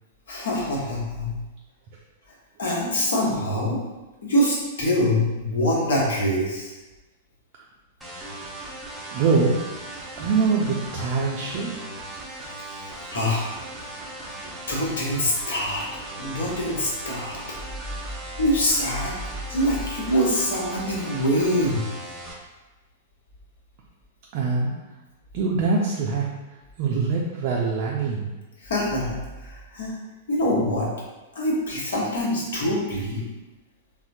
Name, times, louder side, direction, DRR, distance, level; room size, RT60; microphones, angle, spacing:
voice 1, 0.3-1.4 2.6-3.8 4.2-6.7 13.1-13.5 14.7-15.8 16.2-17.4 18.4-19.1 19.5-21.8 28.6-29.2 29.4-29.9 30.3-30.9 31.3-33.3, equal, 60° left, -3 dB, 0.9 m, -24 dB
sound 1, 8.0-22.3, right 2 dB, ahead, 0.7 m, -38 dB
voice 2, 9.1-9.5 10.2-11.8 24.3-24.7 25.3-26.3 26.8-28.3, right 4 dB, 45° right, -3 dB, 0.4 m, -23 dB
4.2 x 2.0 x 2.6 m, 1.1 s
figure-of-eight pair, 100°, 0 cm